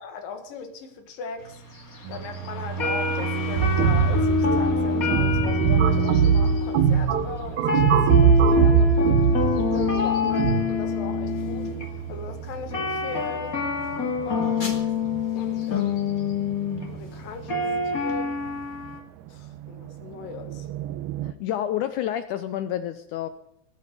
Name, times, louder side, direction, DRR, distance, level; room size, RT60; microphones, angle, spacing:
voice 1, 0.0-1.6 1.9-9.1 9.6-13.5 14.2-14.9 15.4-16.0 16.9-18.4 19.3-20.7, left 5 dB, 65° left, 7 dB, 3.4 m, -38 dB
sound 1, 1.5-19.0, left 4 dB, 25° left, 2.3 m, -27 dB
sound 2, 2.0-21.3, right 7 dB, 85° right, 2.7 m, -34 dB
sound 3, 3.6-10.6, right 7 dB, 65° right, 2.1 m, -21 dB
voice 2, 14.4-14.8 21.2-23.3, left 11 dB, 85° left, 11 dB, 1.8 m, -30 dB
19.0 x 8.5 x 8.3 m, 0.75 s
omnidirectional pair, 4.4 m